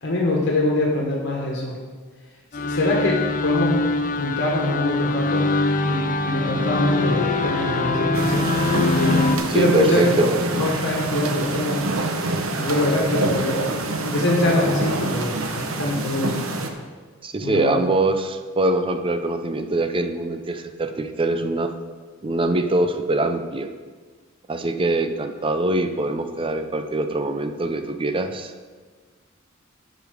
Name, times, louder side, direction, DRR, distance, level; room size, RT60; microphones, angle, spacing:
voice 1, 0.0-1.8 2.5-5.5 5.8-8.5 8.9-9.2 9.5-10.0 10.4-11.8 12.6-13.6 14.0-16.4 17.4-17.8, left 1 dB, 60° left, -1 dB, 1.5 m, -24 dB
sound 1, 2.5-9.4, left 2 dB, 40° left, 0.5 m, -23 dB
sound 2, 8.1-16.7, right 2 dB, 80° right, 0.9 m, -26 dB
voice 2, 9.5-10.4 17.2-21.7 22.2-23.7 24.5-28.5, right 2 dB, 25° right, 8 dB, 0.5 m, -23 dB
11.0 x 5.0 x 5.1 m, 1.5 s
head